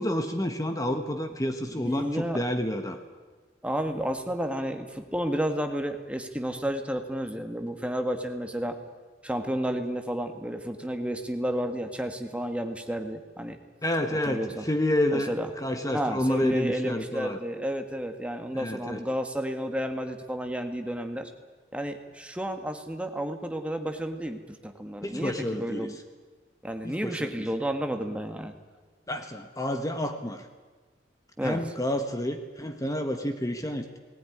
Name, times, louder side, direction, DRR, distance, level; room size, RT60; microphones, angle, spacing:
voice 1, 0.0-3.0 13.8-17.4 18.5-19.0 25.0-25.9 26.8-27.3 29.1-30.4 31.4-34.0, left 1 dB, 20° left, 6 dB, 1.3 m, -29 dB
voice 2, 1.7-2.4 3.6-8.7 9.2-13.6 14.2-14.7 15.1-15.5 15.9-21.3 21.7-26.0 26.6-28.5 31.4-31.6, equal, 5° right, 6 dB, 1.6 m, -31 dB
19.0 x 17.5 x 9.9 m, 1.3 s
head